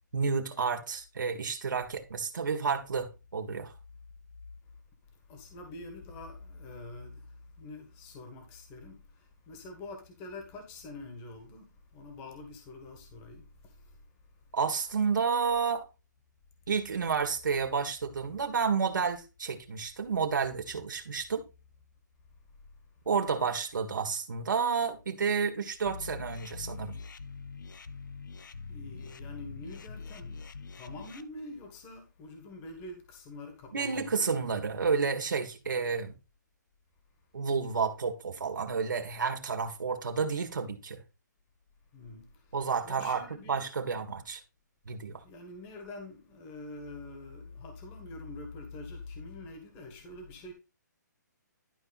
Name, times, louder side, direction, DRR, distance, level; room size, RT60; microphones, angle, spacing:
voice 1, 0.1-3.7 14.5-15.9 16.7-21.4 23.1-26.9 33.7-36.2 37.3-41.0 42.5-44.4 44.9-45.2, right 5 dB, 90° right, 1.8 m, -30 dB
voice 2, 5.3-14.0 28.7-30.5 30.7-34.1 41.9-42.6 42.8-43.7 45.2-50.5, left 2 dB, 20° left, 1.7 m, -45 dB
sound 1, 25.8-31.2, left 4 dB, 85° left, 0.8 m, -43 dB
11.5 x 4.4 x 4.1 m
hypercardioid pair, 165°, 10 cm